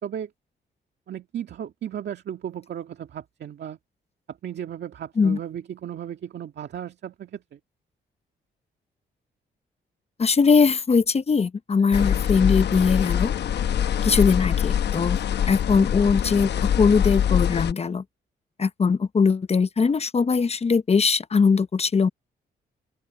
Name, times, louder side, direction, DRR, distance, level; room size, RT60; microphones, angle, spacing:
voice 1, 1.1-3.8 4.3-7.6, right 9 dB, 70° right, 2.0 m, -35 dB
voice 2, 10.2-13.3 14.0-15.2 15.5-18.0 18.6-22.1, left 5 dB, 35° left, 0.8 m, -21 dB
sound 1, 11.9-17.7, left 9 dB, 70° left, 1.0 m, -24 dB
open air
cardioid pair, 70°, 18 cm